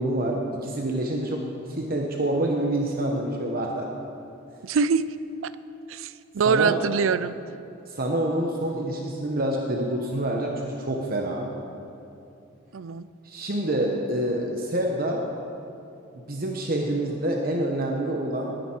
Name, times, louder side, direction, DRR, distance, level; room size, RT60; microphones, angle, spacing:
voice 1, 0.0-1.4 1.7-3.9 6.4-6.8 7.9-11.5 13.2-15.2 16.1-18.5, right 1 dB, 45° right, 0 dB, 1.1 m, -27 dB
voice 2, 4.6-5.0 5.4-5.5 5.9-7.4 12.7-13.1, right 5 dB, 80° right, 16 dB, 0.4 m, -24 dB
19.5 x 9.3 x 4.5 m, 2.7 s
head